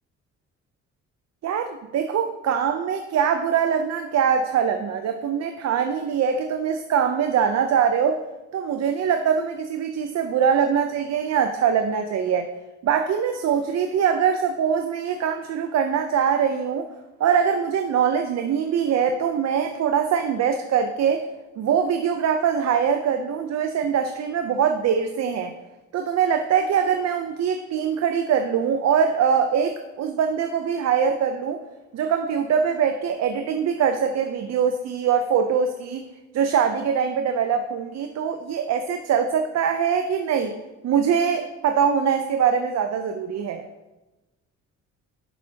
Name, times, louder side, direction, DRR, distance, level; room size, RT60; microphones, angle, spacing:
voice 1, 1.4-8.2 8.5-12.5 12.8-16.9 17.2-21.2 21.6-25.5 25.9-31.6 31.9-36.1 36.3-40.5 40.8-43.6, right 7 dB, 60° right, 6 dB, 0.7 m, -23 dB
10.5 x 7.1 x 2.8 m, 1.1 s
cardioid pair, 90°, 30 cm